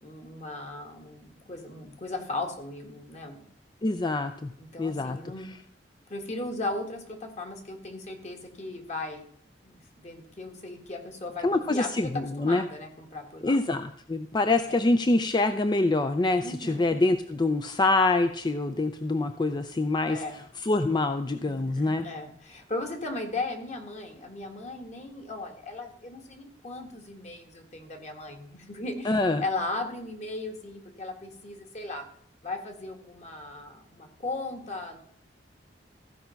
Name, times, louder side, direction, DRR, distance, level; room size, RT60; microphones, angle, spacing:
voice 1, 0.0-3.4 4.6-5.5 6.1-9.3 9.6-13.6 14.7-14.8 16.4-16.8 20.1-20.4 21.4-32.0 32.4-35.0, left 2 dB, 40° left, 4 dB, 1.7 m, -37 dB
voice 2, 3.8-4.5 4.8-5.5 11.4-12.6 13.4-20.2 20.6-22.0 29.0-29.4, left 2 dB, 25° left, 9 dB, 0.4 m, -25 dB
15.0 x 5.2 x 5.8 m, 0.63 s
head